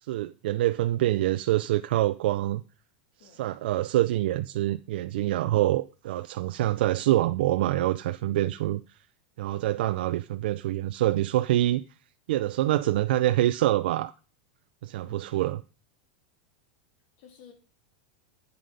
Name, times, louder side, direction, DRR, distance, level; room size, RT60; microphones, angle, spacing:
voice 1, 0.1-2.6 3.4-8.8 9.4-11.8 12.3-14.1 14.8-15.6, right 14 dB, 70° right, 0.5 m, -25 dB
voice 2, 15.0-15.6 17.2-17.5, left 7 dB, 55° left, 3.4 m, -53 dB
8.3 x 7.6 x 5.3 m
supercardioid pair, 145°, 6 cm